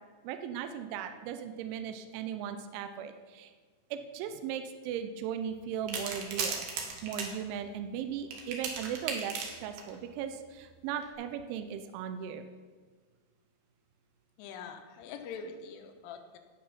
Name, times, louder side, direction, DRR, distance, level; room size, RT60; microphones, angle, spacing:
voice 1, 0.2-3.5 3.9-6.7 7.0-12.4, right 8 dB, 80° right, 8 dB, 3.0 m, -37 dB
sound 1, 5.9-7.3 8.3-9.9 10.9-11.0, right 5 dB, 60° right, 2.6 m, -36 dB
voice 2, 14.4-16.4, left 5 dB, 85° left, 6 dB, 3.4 m, -44 dB
16.5 x 6.6 x 5.7 m, 1.5 s
omnidirectional pair, 5.6 m